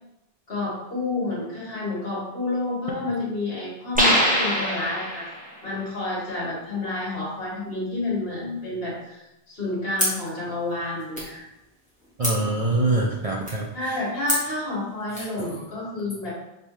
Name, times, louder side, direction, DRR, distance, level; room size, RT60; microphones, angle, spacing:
voice 1, 0.5-5.3 5.6-9.2 9.5-11.5 13.7-16.3, left 2 dB, 65° left, -5 dB, 1.7 m, -29 dB
sound 1, 4.0-5.5, equal, 10° right, 0.8 m, -22 dB
sound 2, 9.9-15.4, equal, 5° left, 1.6 m, -33 dB
voice 2, 12.2-13.9 15.2-15.6, right 2 dB, 45° right, -2 dB, 0.5 m, -25 dB
5.3 x 3.1 x 3.2 m, 0.90 s
omnidirectional pair, 1.1 m